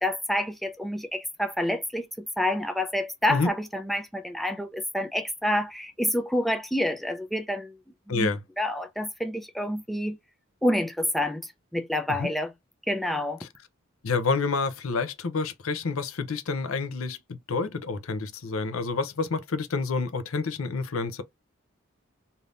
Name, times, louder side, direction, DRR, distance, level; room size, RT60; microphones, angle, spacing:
voice 1, 0.0-2.1 2.4-7.8 8.1-8.3 8.6-10.2 10.6-11.4 11.7-12.5 12.9-13.4, left 1 dB, ahead, 0.4 m, -28 dB
voice 2, 8.1-8.4 12.2-12.3 13.4-13.5 14.0-21.2, left 4 dB, 85° left, 0.6 m, -28 dB
3.3 x 2.7 x 2.5 m
head